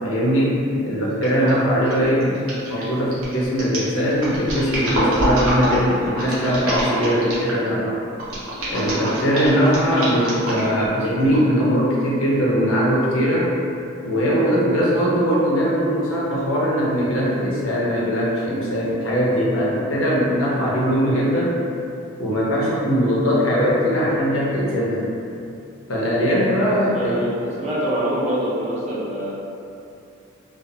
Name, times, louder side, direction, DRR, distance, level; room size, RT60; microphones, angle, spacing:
voice 1, 0.0-0.6 0.9-2.4 2.7-8.0 8.7-13.5 14.0-21.6 22.2-25.0 25.9-27.2, equal, 75° left, -5 dB, 0.6 m, -20 dB
sound 1, 1.2-1.5 1.8-7.7 8.2-10.9 11.3-11.4, right 1 dB, 85° right, 0.8 m, -25 dB
voice 2, 26.6-29.3, equal, 35° right, -8 dB, 0.5 m, -25 dB
2.4 x 2.3 x 2.6 m, 2.6 s
head